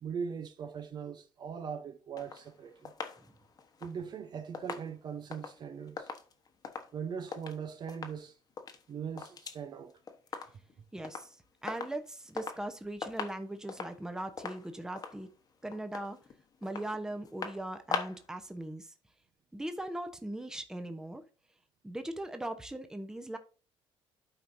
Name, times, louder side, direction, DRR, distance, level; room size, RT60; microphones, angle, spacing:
voice 1, 0.0-2.9 3.8-6.1 6.9-8.4 8.9-10.0, right 7 dB, 45° right, 0.8 m, -40 dB
sound 1, 2.2-7.6 7.9-8.2 8.5-9.6 9.9-10.7 11.0-11.3 11.7-12.7 13.0-18.3 18.6-18.7, left 5 dB, 40° left, 1.1 m, -42 dB
voice 2, 10.9-15.3 15.6-16.2 16.6-18.9 19.5-21.2 21.8-23.4, right 1 dB, 5° right, 0.9 m, -39 dB
12.0 x 4.6 x 2.7 m
cardioid pair, 100°, 10 cm